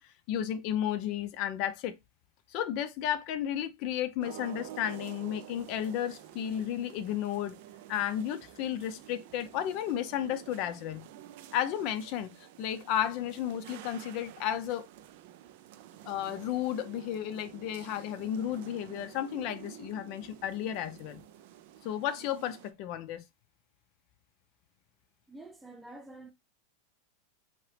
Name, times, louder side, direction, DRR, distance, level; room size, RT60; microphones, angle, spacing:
voice 1, 0.0-2.0 2.5-7.6 7.9-11.0 11.5-14.9 16.1-21.2 21.8-23.2, left 10 dB, 55° left, 0.4 m, -33 dB
sound 1, 4.2-22.7, right 11 dB, 65° right, 0.4 m, -50 dB
voice 2, 25.3-26.3, right 2 dB, 10° right, 0.7 m, -48 dB
2.8 x 2.8 x 3.3 m
hypercardioid pair, 115°, 0 cm